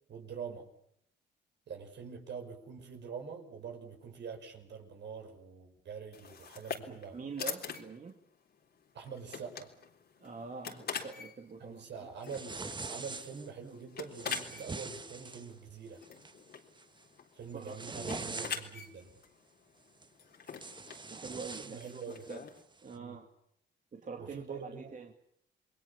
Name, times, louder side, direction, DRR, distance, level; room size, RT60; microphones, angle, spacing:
voice 1, 0.1-0.7 1.7-7.2 8.9-9.7 11.6-16.0 17.3-19.1 21.6-22.3 22.9-23.2 24.2-24.9, right 6 dB, 60° right, 4 dB, 5.8 m, -45 dB
sound 1, 6.1-22.6, left 6 dB, 55° left, 3.7 m, -45 dB
voice 2, 6.9-8.2 10.2-12.1 17.5-18.5 21.1-22.0 22.3-22.4 22.8-23.3 23.9-25.1, right 5 dB, 40° right, 3 dB, 2.6 m, -44 dB
sound 2, 12.3-13.5 14.1-15.5 16.0-16.3 16.8-17.0 17.4-18.8 20.0-20.1 20.5-22.4, right 3 dB, 25° right, 1.5 m, -43 dB
28.5 x 21.5 x 7.2 m, 0.71 s
cardioid pair, 90°, 20 cm